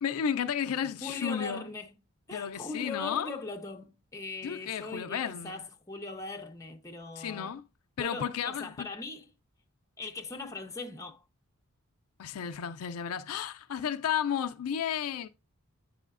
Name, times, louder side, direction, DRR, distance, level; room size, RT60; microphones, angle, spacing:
voice 1, 0.0-1.7 2.3-3.4 4.4-5.7 7.2-7.6 8.0-8.9 12.2-15.3, left 8 dB, 75° left, 0.4 m, -33 dB
voice 2, 1.0-1.9 2.3-7.5 8.0-9.3 10.0-11.2, left 3 dB, 15° left, 0.8 m, -40 dB
9.0 x 4.9 x 2.4 m
head